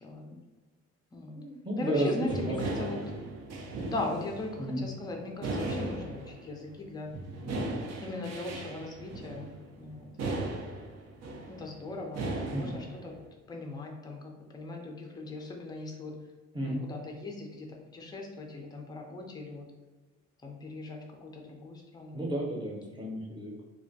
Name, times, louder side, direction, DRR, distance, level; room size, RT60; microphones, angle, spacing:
voice 1, 0.0-0.4 1.1-1.4 1.8-2.5 2.8-3.4 3.8-7.1 8.0-10.1 11.5-13.1 13.5-16.2 16.6-19.7 20.4-22.2, left 2 dB, 15° left, 1 dB, 0.4 m, -39 dB
voice 2, 1.3-3.1 4.6-4.8 7.4-7.7 12.5-12.8 16.5-16.8 22.1-23.5, right 1 dB, 15° right, -4 dB, 0.7 m, -33 dB
sound 1, 2.2-6.7 7.0-13.3, right 2 dB, 60° right, 0.5 m, -37 dB
2.2 x 2.1 x 2.6 m, 1.2 s
cardioid pair, 90°, 30 cm